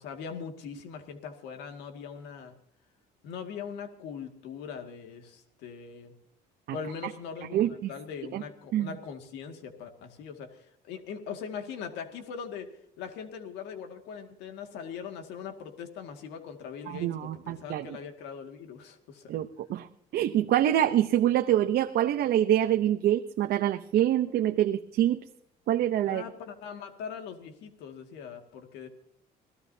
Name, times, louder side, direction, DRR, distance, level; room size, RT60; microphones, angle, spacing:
voice 1, 0.0-2.5 3.2-6.1 6.7-12.7 13.0-19.3 26.1-28.9, left 6 dB, 90° left, 5 dB, 2.1 m, -41 dB
voice 2, 7.5-7.9 8.3-8.4 8.7-9.0 16.9-18.0 19.3-19.9 20.1-25.2 25.7-26.2, right 11 dB, 70° right, 7 dB, 0.9 m, -25 dB
26.5 x 17.0 x 2.8 m, 0.65 s
cardioid pair, 110°, 17 cm